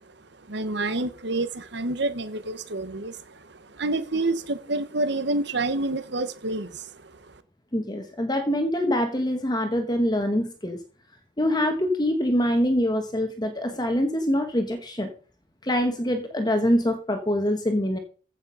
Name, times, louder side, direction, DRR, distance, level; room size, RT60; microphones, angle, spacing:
voice 1, 0.5-7.3, right 2 dB, 60° right, 1.3 m, -28 dB
voice 2, 7.7-10.8 11.4-15.1 15.6-18.0, equal, 20° left, 1.3 m, -24 dB
15.0 x 6.3 x 5.6 m
head